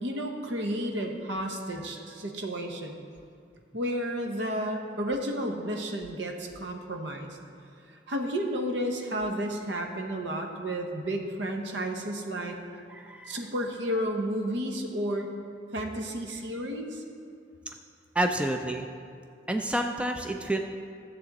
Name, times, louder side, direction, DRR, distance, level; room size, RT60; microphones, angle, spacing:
voice 1, 0.0-3.0 3.7-7.3 8.1-12.6 13.3-15.3 15.7-17.0, equal, 70° right, 3 dB, 1.0 m, -32 dB
voice 2, 12.9-13.4 18.2-18.9 19.5-20.6, right 1 dB, 5° right, 4 dB, 0.4 m, -29 dB
13.0 x 7.5 x 4.1 m, 2.4 s
head